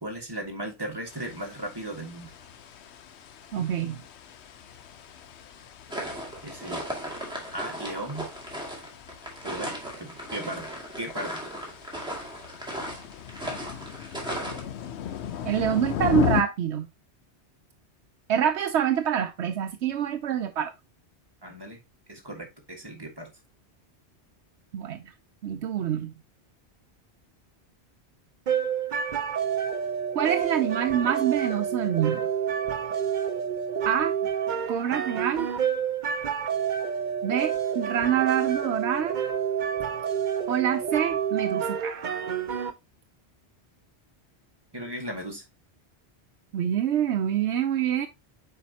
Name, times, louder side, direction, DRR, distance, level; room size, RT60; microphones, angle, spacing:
voice 1, 0.0-2.3 6.4-6.9 7.5-8.3 9.4-10.7 11.0-11.4 21.4-21.8 22.1-23.3 44.7-45.4, right 1 dB, 20° right, 1.7 m, -36 dB
sound 1, 1.1-16.4, left 9 dB, 80° left, 1.0 m, -36 dB
voice 2, 3.5-4.0 15.4-16.9 18.3-20.7 24.7-25.0 25.4-26.1 30.1-32.2 33.8-34.1 34.7-35.5 37.2-39.2 40.5-42.1 46.5-48.1, right 9 dB, 85° right, 0.9 m, -26 dB
sound 2, 5.9-14.6, right 1 dB, 5° right, 2.2 m, -36 dB
sound 3, 28.5-42.7, right 8 dB, 50° right, 0.7 m, -29 dB
7.3 x 4.9 x 2.8 m
omnidirectional pair, 1.1 m